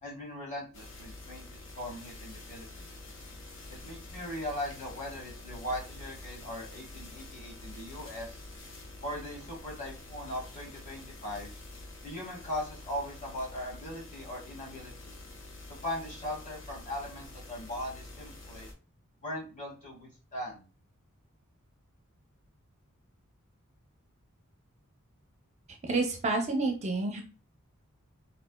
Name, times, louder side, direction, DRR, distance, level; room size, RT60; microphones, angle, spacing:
voice 1, 0.0-1.4 1.8-2.9 3.7-8.4 9.0-11.5 12.0-15.2 15.7-18.7 19.2-20.6, left 1 dB, 35° left, -3 dB, 1.7 m, -39 dB
sound 1, 0.7-18.7, left 2 dB, 60° left, 1.0 m, -47 dB
voice 2, 25.8-27.2, right 3 dB, 30° right, 3 dB, 0.6 m, -29 dB
4.1 x 3.2 x 2.2 m, 0.35 s
head